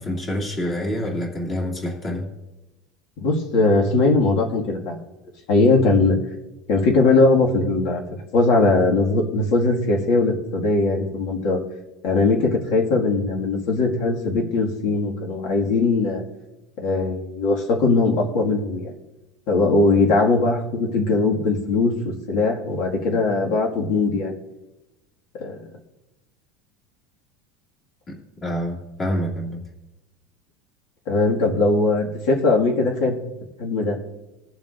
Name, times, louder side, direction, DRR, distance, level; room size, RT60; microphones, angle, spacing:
voice 1, 0.0-2.3 28.1-28.2 28.4-29.6, equal, 25° left, -1 dB, 2.5 m, -27 dB
voice 2, 3.2-5.0 5.5-6.2 6.7-8.0 8.3-11.6 12.0-16.2 16.8-18.9 19.5-21.9 22.3-24.4 25.3-25.6 31.1-33.2 33.6-34.0, left 3 dB, 60° left, 0 dB, 2.1 m, -20 dB
21.5 x 7.2 x 2.6 m, 1.0 s
cardioid pair, 160°, 0 cm